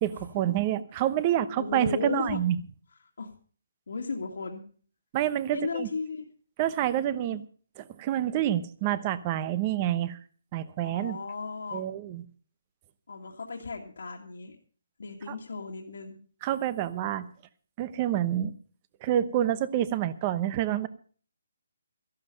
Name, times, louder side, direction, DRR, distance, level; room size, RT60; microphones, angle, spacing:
voice 1, 0.0-2.6 5.1-5.9 6.6-7.4 7.8-10.2 10.5-11.2 11.7-12.2 15.3-15.4 16.4-17.3 17.8-18.5 19.0-20.9, right 12 dB, 25° right, 15 dB, 0.8 m, -28 dB
voice 2, 1.6-2.4 3.2-3.3 3.9-4.6 5.5-6.2 7.3-7.4 10.8-11.8 13.1-14.6 15.0-16.2, left 4 dB, 75° left, 1 dB, 2.0 m, -35 dB
14.0 x 11.5 x 5.2 m, 0.42 s
hypercardioid pair, 165°, 0 cm